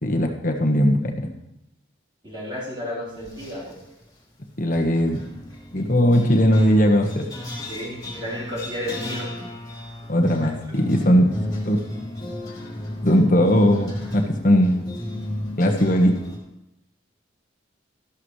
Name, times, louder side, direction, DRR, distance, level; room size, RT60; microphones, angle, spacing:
voice 1, 0.0-1.3 4.6-5.2 5.7-7.3 10.1-11.3 11.6-11.8 13.0-14.8 15.6-16.2, equal, 45° left, 3 dB, 1.4 m, -19 dB
voice 2, 2.2-3.8 7.7-9.3 10.4-10.5, left 1 dB, 25° right, -8 dB, 4.1 m, -32 dB
sound 1, 3.2-3.8 4.7-16.4, left 1 dB, 20° left, 2.7 m, -34 dB
13.0 x 12.0 x 3.3 m, 0.88 s
head